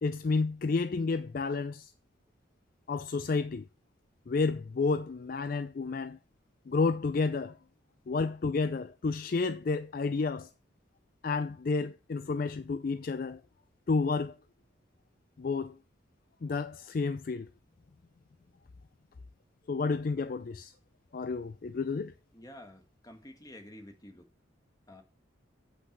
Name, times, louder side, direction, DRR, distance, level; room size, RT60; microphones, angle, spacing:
voice 1, 0.0-1.9 2.9-3.7 4.3-6.2 6.7-7.6 8.1-10.5 11.2-13.4 13.9-14.4 15.4-15.8 16.4-17.5 19.7-20.7 21.1-22.1, left 4 dB, 45° left, 0.4 m, -30 dB
voice 2, 22.3-24.3 24.9-25.0, left 1 dB, 20° left, 1.6 m, -50 dB
7.9 x 6.1 x 6.0 m
head